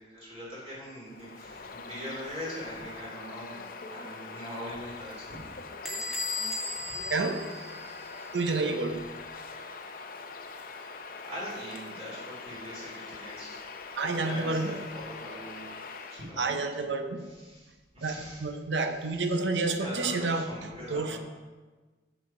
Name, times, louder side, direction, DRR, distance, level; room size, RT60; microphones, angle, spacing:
voice 1, 0.0-5.5 6.1-6.3 6.9-7.0 11.2-13.6 14.0-15.7 16.1-16.8 17.4-18.5 19.3-21.2, equal, 35° right, -6 dB, 3.0 m, -42 dB
Bird vocalization bird call bird song, 1.1-16.3, left 4 dB, 50° left, 0.6 m, -43 dB
Bell / Squeak, 5.9-8.4, left 3 dB, ahead, 0.9 m, -36 dB
voice 2, 7.1-7.6 8.3-9.1 13.9-14.8 16.4-17.3 18.0-21.2, right 3 dB, 80° right, 7 dB, 0.7 m, -30 dB
7.3 x 7.0 x 5.0 m, 1.3 s
head